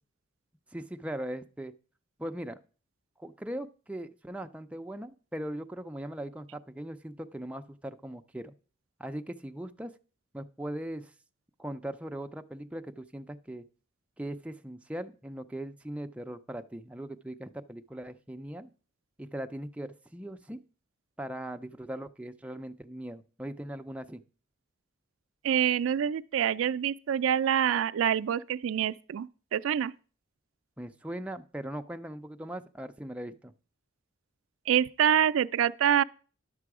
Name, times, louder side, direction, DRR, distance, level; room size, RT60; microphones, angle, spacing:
voice 1, 0.7-1.7 2.2-2.6 3.2-8.5 9.0-9.9 10.3-11.1 11.6-13.6 14.2-18.7 19.2-20.6 21.2-24.2 30.8-33.5, right 1 dB, 5° right, 0.4 m, -39 dB
voice 2, 25.4-29.9 34.7-36.0, right 9 dB, 90° right, 0.3 m, -26 dB
11.0 x 6.8 x 4.8 m
head